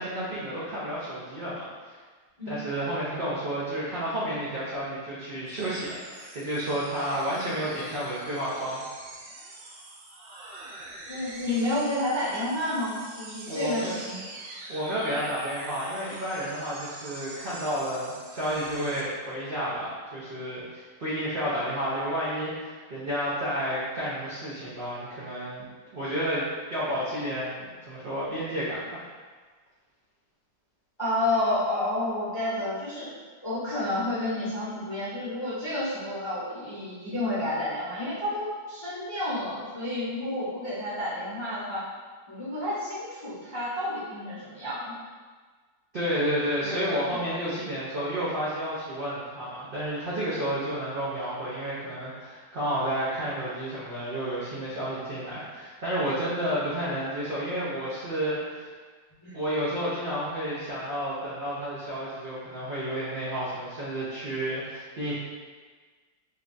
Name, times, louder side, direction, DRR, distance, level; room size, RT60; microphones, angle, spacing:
voice 1, 0.0-2.0 2.5-8.8 13.5-13.9 14.7-25.7 25.9-26.4 26.7-29.0 45.9-58.7 59.3-65.1, equal, 55° right, -10 dB, 0.6 m, -31 dB
sound 1, 5.5-19.0, right 2 dB, 85° right, 1.3 m, -44 dB
voice 2, 11.1-14.2 31.0-33.1 33.4-41.8 42.3-44.9 46.6-47.2 59.2-59.4, left 1 dB, 20° left, -12 dB, 0.8 m, -30 dB
3.2 x 2.3 x 3.8 m, 1.4 s
omnidirectional pair, 1.9 m